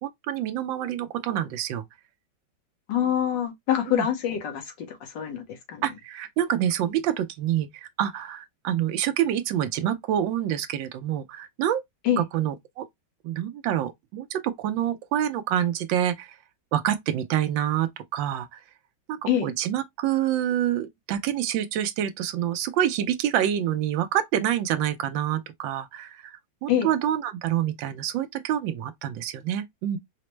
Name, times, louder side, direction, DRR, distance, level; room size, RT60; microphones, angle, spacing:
voice 1, 0.0-1.8 3.9-4.0 5.8-11.8 12.2-12.9 13.2-16.4 16.7-18.6 19.1-30.0, right 11 dB, 85° right, 1.3 m, -27 dB
voice 2, 2.9-5.8 12.0-12.2 19.3-19.5 26.7-26.9, left 10 dB, 70° left, 1.7 m, -25 dB
4.9 x 2.0 x 3.1 m
omnidirectional pair, 2.0 m